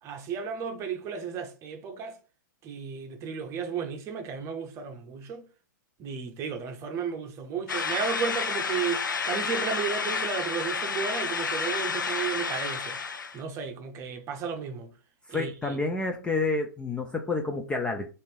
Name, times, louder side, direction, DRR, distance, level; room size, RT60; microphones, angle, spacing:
voice 1, 0.0-2.2 2.6-5.4 6.0-13.1 13.3-14.9 15.3-15.8, right 6 dB, 30° right, 0.7 m, -34 dB
sound 1, 7.7-13.4, left 5 dB, 85° left, 0.6 m, -30 dB
voice 2, 15.3-18.1, left 3 dB, 10° left, 0.3 m, -29 dB
4.0 x 2.6 x 3.3 m
hypercardioid pair, 120°, 10 cm